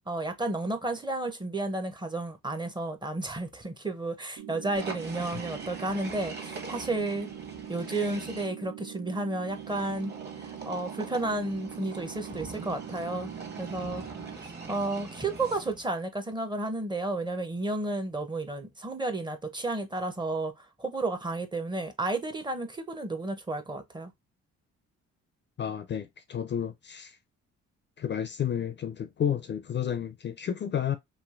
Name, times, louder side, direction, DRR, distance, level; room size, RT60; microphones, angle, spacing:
voice 1, 0.0-7.3 7.7-10.1 10.4-13.3 13.6-14.0 14.7-24.1, right 2 dB, 15° right, 0.6 m, -32 dB
sound 1, 4.4-14.4, right 11 dB, 90° right, 0.6 m, -43 dB
sound 2, 4.8-8.5 9.5-15.9, right 3 dB, 35° right, 1.1 m, -42 dB
voice 2, 25.6-27.2 28.0-31.0, left 9 dB, 40° left, 0.4 m, -31 dB
3.1 x 2.6 x 2.3 m
cardioid pair, 90°, 30 cm